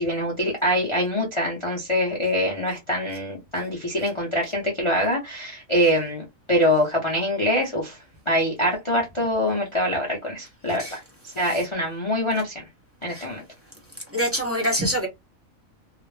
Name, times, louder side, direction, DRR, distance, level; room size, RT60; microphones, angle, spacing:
voice 1, 0.0-8.0 8.3-11.0 11.4-12.6 13.0-13.4, equal, 30° left, 0.5 m, -24 dB
voice 2, 14.1-15.1, equal, 15° right, 0.7 m, -25 dB
2.4 x 2.0 x 3.2 m
omnidirectional pair, 1.4 m